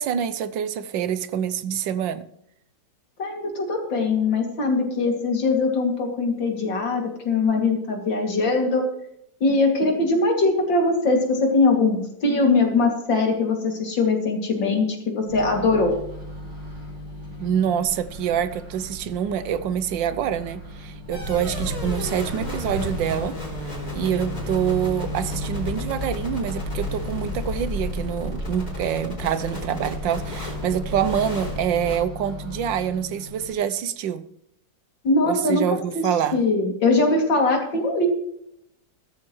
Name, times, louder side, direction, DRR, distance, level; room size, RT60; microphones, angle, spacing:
voice 1, 0.0-2.2 17.4-23.4 23.9-34.2 35.2-36.4, right 9 dB, 90° right, 1.5 m, -26 dB
voice 2, 3.2-8.8 9.4-15.9 35.0-36.0 36.3-38.1, left 3 dB, 85° left, 3.3 m, -21 dB
Microwave oven, 15.3-33.5, left 1 dB, 60° right, 5.5 m, -36 dB
sound 1, 21.1-32.0, left 1 dB, 25° left, 3.8 m, -33 dB
15.5 x 13.5 x 3.2 m
omnidirectional pair, 2.0 m